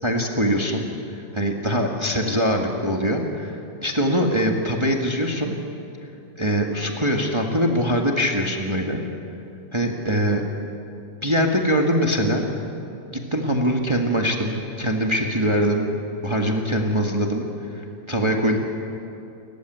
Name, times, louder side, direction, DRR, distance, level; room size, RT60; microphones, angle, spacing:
voice 1, 0.0-5.6 6.4-9.0 9.7-10.4 11.2-12.5 13.1-15.9 16.2-18.6, equal, 15° right, 1 dB, 1.8 m, -23 dB
30.0 x 14.5 x 9.3 m, 2.7 s
omnidirectional pair, 2.0 m